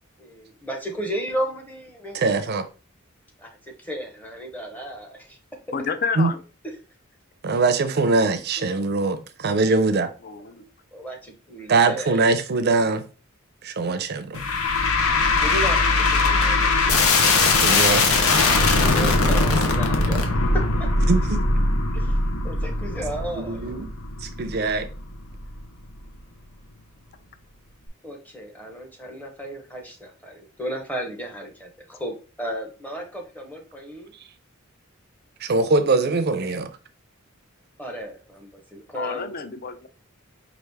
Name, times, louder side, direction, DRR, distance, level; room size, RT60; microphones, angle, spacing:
voice 1, 0.2-2.4 3.4-5.4 6.6-6.7 8.6-8.7 10.5-12.2 15.4-17.0 18.7-20.9 21.9-22.2 22.4-23.7 28.0-34.1 36.0-36.6 37.8-39.3, right 1 dB, 10° left, 0.8 m, -34 dB
voice 2, 2.1-2.7 6.2-6.3 7.4-10.1 11.7-13.0 13.6-14.4 17.6-18.1 21.1-21.6 23.4-23.9 24.2-24.9 35.4-36.7, right 3 dB, 50° right, 0.5 m, -22 dB
voice 3, 5.7-6.4 10.2-10.6 38.9-39.9, left 5 dB, 45° left, 0.5 m, -30 dB
sound 1, 14.3-25.6, left 3 dB, 80° left, 0.8 m, -21 dB
4.7 x 2.5 x 3.3 m
head